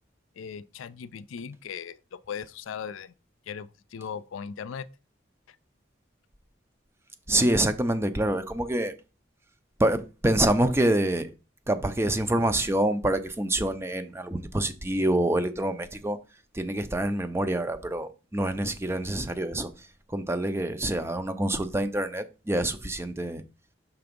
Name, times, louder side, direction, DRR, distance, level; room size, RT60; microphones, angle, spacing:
voice 1, 0.4-3.1 3.5-4.9 5.5-5.6, left 7 dB, 85° left, 0.4 m, -38 dB
voice 2, 7.3-8.9 9.8-11.3 11.7-16.2 16.5-23.4, right 1 dB, 15° right, 0.5 m, -26 dB
5.9 x 3.4 x 5.2 m
head